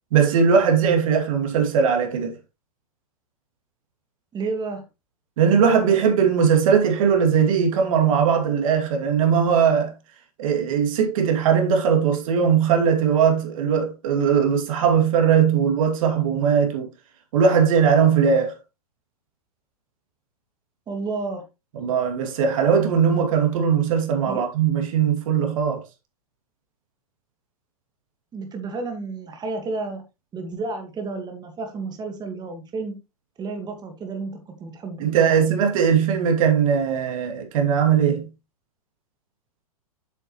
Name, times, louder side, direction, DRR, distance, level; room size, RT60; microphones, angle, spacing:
voice 1, 0.1-2.4 5.4-9.9 10.4-16.9 17.3-18.6 21.8-25.8 35.0-38.3, right 7 dB, 60° right, 2.6 m, -19 dB
voice 2, 4.3-4.8 20.9-21.5 24.3-24.5 28.3-30.0 30.3-33.0 33.4-35.4, right 3 dB, 20° right, 1.7 m, -31 dB
8.0 x 6.5 x 3.1 m
hypercardioid pair, 115°, 19 cm